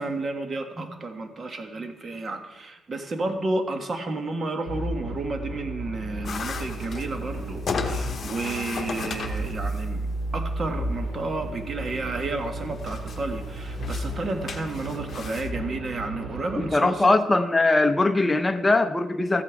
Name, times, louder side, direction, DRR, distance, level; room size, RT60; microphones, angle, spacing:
voice 1, 0.0-10.0 10.3-17.1, right 2 dB, 40° right, 5 dB, 1.4 m, -31 dB
sound 1, 4.7-16.6, right 1 dB, 75° right, 4.0 m, -33 dB
sound 2, 6.2-15.5, left 5 dB, 45° left, 1.0 m, -37 dB
voice 2, 16.6-19.4, left 2 dB, 20° left, 8 dB, 0.6 m, -21 dB
14.0 x 8.4 x 3.5 m, 1.1 s
cardioid pair, 90°, 0 cm